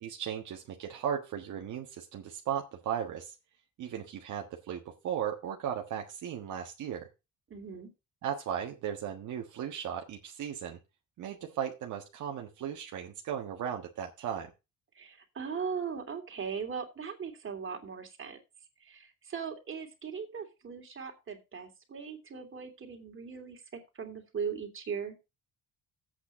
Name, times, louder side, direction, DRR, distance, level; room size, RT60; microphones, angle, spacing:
voice 1, 0.0-3.3 3.8-7.1 8.2-10.8 11.2-14.5, right 9 dB, 75° right, 2 dB, 1.5 m, -36 dB
voice 2, 7.5-7.9 14.9-18.4 18.8-25.2, right 6 dB, 45° right, 3 dB, 3.0 m, -39 dB
8.3 x 6.3 x 6.7 m, 0.27 s
cardioid pair, 90°, 30 cm